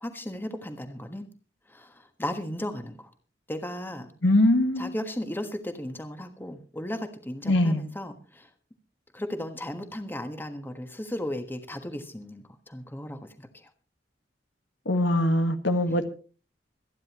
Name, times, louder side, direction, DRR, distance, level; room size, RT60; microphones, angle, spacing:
voice 1, 0.0-1.3 1.7-3.1 3.5-4.1 4.8-8.5 9.1-13.7, left 1 dB, 10° left, 7 dB, 1.4 m, -36 dB
voice 2, 4.2-4.9 7.5-7.8 14.9-16.0, left 1 dB, 80° left, 7 dB, 1.6 m, -22 dB
25.5 x 10.0 x 3.0 m, 0.37 s
head